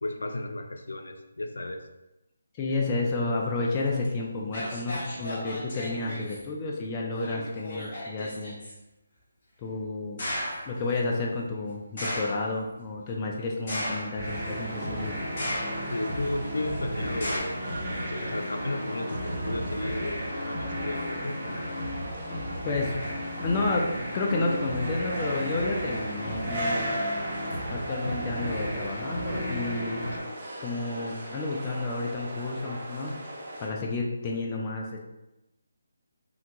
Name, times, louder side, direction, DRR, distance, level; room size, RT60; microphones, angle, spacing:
voice 1, 0.0-1.9 15.9-17.6 18.0-21.8, left 2 dB, 80° left, 5 dB, 0.4 m, -34 dB
voice 2, 2.6-8.6 9.6-10.2 10.6-15.2 22.6-23.1 23.4-26.9 27.7-30.1 30.6-33.2 33.6-35.0, left 3 dB, 20° left, -2 dB, 0.4 m, -31 dB
Spatula on tin roof, 4.0-4.1 4.5-6.4 7.1-8.7 10.2-10.7 12.0-12.5 13.7-14.4 15.4-16.0 17.2-17.4, left 1 dB, 40° left, 1.2 m, -34 dB
sound 1, 14.1-30.2, equal, 5° left, 1.2 m, -34 dB
sound 2, 14.2-33.7, right 1 dB, 30° right, 0.7 m, -38 dB
3.4 x 2.2 x 2.9 m, 0.95 s
figure-of-eight pair, 165°, 0 cm